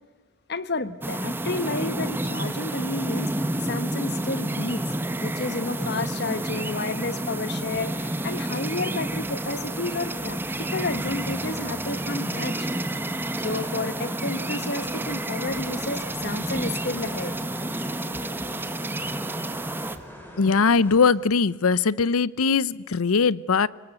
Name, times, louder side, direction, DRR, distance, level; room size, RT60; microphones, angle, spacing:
voice 1, 0.5-3.3 3.6-12.7 13.4-17.4, left 2 dB, 50° left, 15 dB, 1.2 m, -31 dB
sound 1, 1.0-20.0, right 1 dB, 10° right, 0.9 m, -30 dB
sound 2, 5.4-21.1, equal, 10° left, 3.9 m, -45 dB
voice 2, 20.4-23.7, left 5 dB, 90° left, 21 dB, 0.7 m, -21 dB
25.0 x 19.5 x 8.2 m, 1.3 s
head